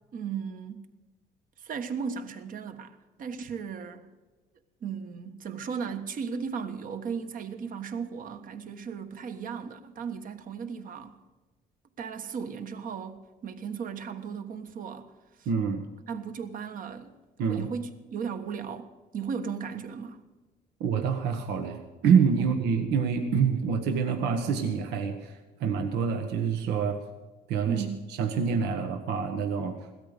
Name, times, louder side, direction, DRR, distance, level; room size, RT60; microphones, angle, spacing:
voice 1, 0.1-0.9 1.6-4.1 4.8-11.1 12.0-13.2 13.4-15.1 15.4-15.5 16.1-17.2 17.5-20.2 22.4-22.5 27.7-28.0, right 6 dB, 55° right, 1.4 m, -36 dB
voice 2, 15.4-15.8 17.4-17.7 20.8-27.0 27.5-27.8 28.2-29.7, right 6 dB, 85° right, 1.4 m, -26 dB
17.0 x 13.0 x 5.1 m
cardioid pair, 110°, 17 cm